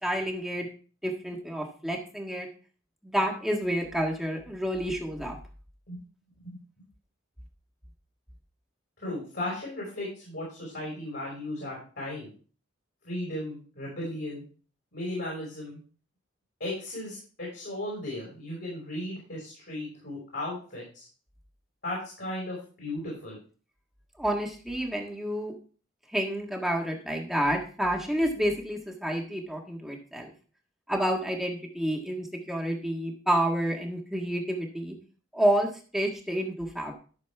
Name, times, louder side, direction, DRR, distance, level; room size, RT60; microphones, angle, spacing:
voice 1, 0.0-0.7 1.0-2.5 3.0-5.4 24.2-25.5 26.1-30.3 30.9-34.9 35.3-36.9, right 1 dB, ahead, 0 dB, 1.6 m, -29 dB
voice 2, 9.0-12.3 13.0-14.4 14.9-15.8 16.6-21.1 21.8-23.4, left 1 dB, 55° left, -4 dB, 5.4 m, -36 dB
13.0 x 6.6 x 3.5 m, 0.40 s
head